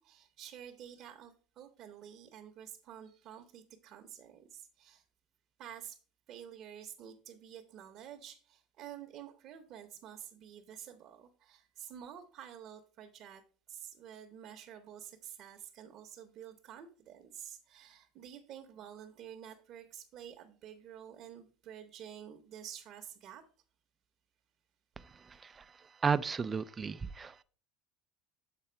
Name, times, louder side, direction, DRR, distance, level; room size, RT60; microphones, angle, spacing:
voice 1, 0.0-5.0 5.6-6.0 6.3-13.4 13.7-23.4 27.2-27.3, right 9 dB, 40° right, 0.7 m, -50 dB
voice 2, 25.3-25.6 26.0-27.4, right 5 dB, 15° right, 0.3 m, -33 dB
7.4 x 4.5 x 4.4 m
cardioid pair, 160°, 0 cm